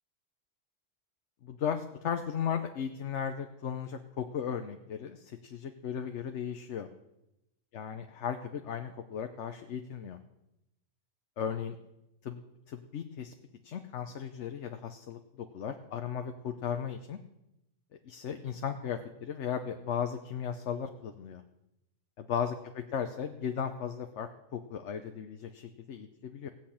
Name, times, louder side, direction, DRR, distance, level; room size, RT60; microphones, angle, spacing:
voice 1, 1.4-6.9 7.7-10.2 11.4-11.8 12.2-12.4 12.7-13.3 13.6-15.2 15.5-17.2 18.1-21.4 22.2-26.5, left 8 dB, 70° left, 6 dB, 1.1 m, -36 dB
17.0 x 6.0 x 8.6 m, 0.90 s
omnidirectional pair, 1.3 m